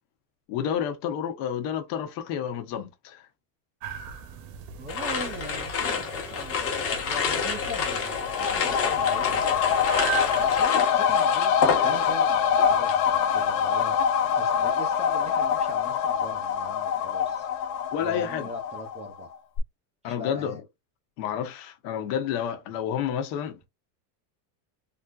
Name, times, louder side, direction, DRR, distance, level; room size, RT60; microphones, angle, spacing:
voice 1, 0.5-3.3 17.9-18.5 20.0-20.6 21.2-23.7, left 8 dB, 75° left, 1.1 m, -30 dB
sound 1, 3.8-10.7, right 8 dB, 55° right, 0.8 m, -38 dB
voice 2, 4.8-9.7 10.4-14.0 14.4-17.5 18.0-19.3 20.0-20.6, equal, 15° right, 0.3 m, -40 dB
sound 2, 4.9-12.3 12.6-13.1, left 6 dB, 30° left, 0.9 m, -29 dB
sound 3, 7.8-19.2 19.6-19.7, left 7 dB, 50° left, 0.6 m, -25 dB
3.5 x 2.6 x 2.3 m
cardioid pair, 165°, 48 cm